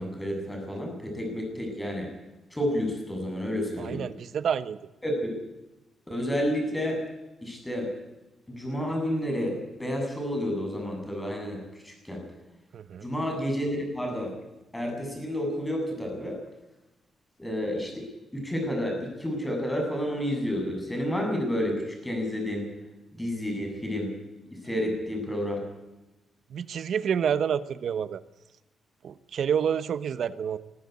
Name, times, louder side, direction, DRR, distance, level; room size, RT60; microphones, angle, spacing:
voice 1, 0.0-2.1 2.5-4.0 5.0-5.3 6.1-7.0 7.4-7.9 8.5-12.2 13.0-14.3 14.7-16.4 17.4-22.7 23.1-24.1 24.5-25.6, equal, 10° left, 2 dB, 7.9 m, -30 dB
voice 2, 3.8-4.8 12.7-13.1 26.5-28.2 29.0-30.6, right 8 dB, 60° right, 13 dB, 1.1 m, -28 dB
22.0 x 14.0 x 9.7 m, 1.0 s
cardioid pair, 135°, 0 cm